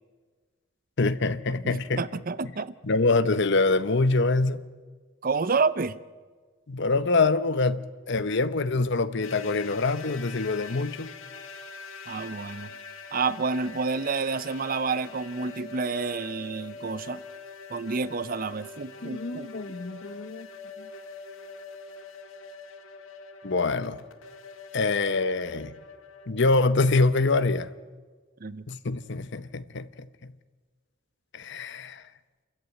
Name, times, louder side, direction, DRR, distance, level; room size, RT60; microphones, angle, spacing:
voice 1, 1.0-2.0 2.8-4.6 6.7-11.1 19.0-20.5 20.8-20.9 23.4-24.0 24.7-25.8 26.3-27.7 28.7-30.1 31.3-32.0, left 3 dB, 55° left, 0.9 m, -25 dB
voice 2, 1.6-2.8 5.2-6.0 12.1-12.7 13.1-17.2 17.7-19.5 28.4-28.6, right 4 dB, 40° right, 0.6 m, -29 dB
sound 1, 9.2-26.3, left 4 dB, 75° left, 1.8 m, -44 dB
29.0 x 14.0 x 9.1 m
head